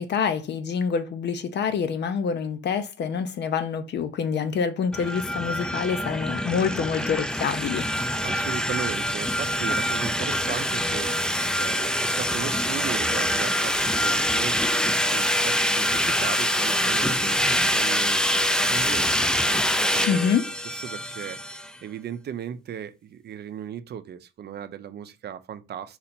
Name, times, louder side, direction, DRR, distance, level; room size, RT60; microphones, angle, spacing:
voice 1, 0.0-7.9 20.1-20.4, left 6 dB, 60° left, 0.7 m, -26 dB
sound 1, 4.9-21.7, equal, 5° left, 0.5 m, -25 dB
voice 2, 8.2-20.3 20.7-26.0, right 9 dB, 55° right, 0.6 m, -37 dB
4.1 x 2.8 x 4.3 m
cardioid pair, 90°, 20 cm